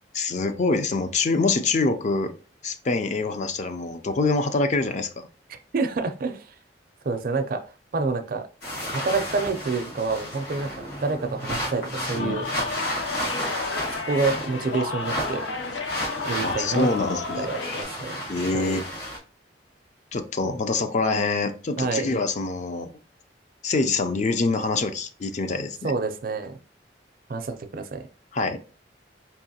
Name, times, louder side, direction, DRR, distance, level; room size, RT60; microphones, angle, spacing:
voice 1, 0.1-2.3 2.6-5.3 12.1-12.4 16.4-17.5 18.3-18.8 20.1-22.9 23.6-25.9 28.3-28.6, left 3 dB, 40° left, 8 dB, 0.4 m, -25 dB
voice 2, 5.5-6.5 7.0-7.6 7.9-8.5 8.9-12.5 13.9-15.5 16.2-18.2 18.5-18.8 21.8-22.1 25.8-26.6 27.3-28.1, right 4 dB, 55° right, 8 dB, 0.5 m, -28 dB
sound 1, 8.6-19.2, equal, 60° left, 1.8 m, -33 dB
sound 2, 12.2-17.8, left 4 dB, 90° left, 0.6 m, -32 dB
4.6 x 2.9 x 2.7 m, 0.37 s
head